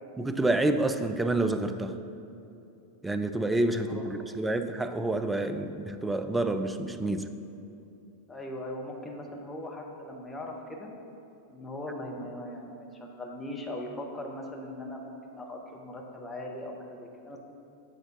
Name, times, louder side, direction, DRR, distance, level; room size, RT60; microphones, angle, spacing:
voice 1, 0.2-2.0 3.0-7.3, right 2 dB, 10° right, 9 dB, 0.3 m, -28 dB
voice 2, 8.3-10.9 11.5-17.4, left 1 dB, 10° left, 0 dB, 0.9 m, -39 dB
7.6 x 3.9 x 5.5 m, 2.7 s
figure-of-eight pair, 90°, 0 cm